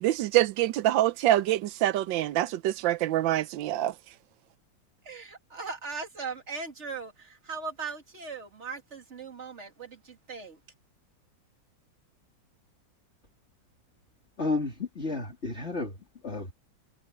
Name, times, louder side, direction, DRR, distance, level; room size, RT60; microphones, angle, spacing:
voice 1, 0.0-3.9, right 14 dB, 80° right, 1.4 m, -25 dB
voice 2, 5.0-10.6, right 4 dB, 35° right, 2.6 m, -39 dB
voice 3, 14.4-16.5, left 3 dB, 35° left, 3.4 m, -32 dB
omnidirectional pair, 2.0 m